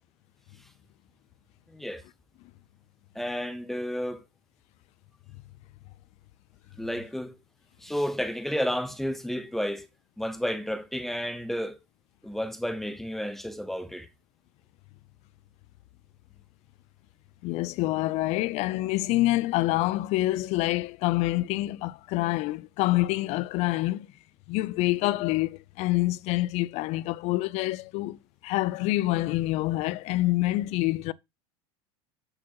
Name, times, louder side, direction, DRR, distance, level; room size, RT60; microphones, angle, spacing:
voice 1, 1.7-2.0 3.1-4.2 6.8-7.4 7.8-9.9 10.2-11.8 12.2-14.1, equal, ahead, 0.8 m, -31 dB
voice 2, 17.4-24.1 24.5-31.1, left 18 dB, 45° left, 0.4 m, -26 dB
8.7 x 4.4 x 2.9 m
supercardioid pair, 130°, 15 cm